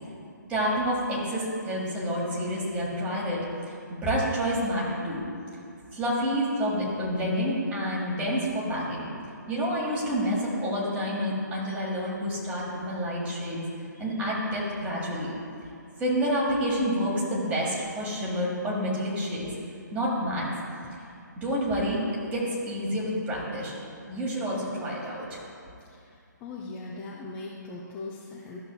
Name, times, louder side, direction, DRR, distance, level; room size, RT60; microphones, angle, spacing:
voice 1, 0.5-3.4 3.7-5.2 5.9-9.1 9.5-13.6 13.9-15.3 16.0-19.5 19.9-20.5 21.4-22.0 22.3-23.7 24.1-25.4, equal, 15° right, -5 dB, 1.5 m, -28 dB
voice 2, 26.4-28.6, left 3 dB, 15° left, -4 dB, 0.5 m, -39 dB
13.0 x 6.3 x 2.2 m, 2.5 s
figure-of-eight pair, 135°, 10 cm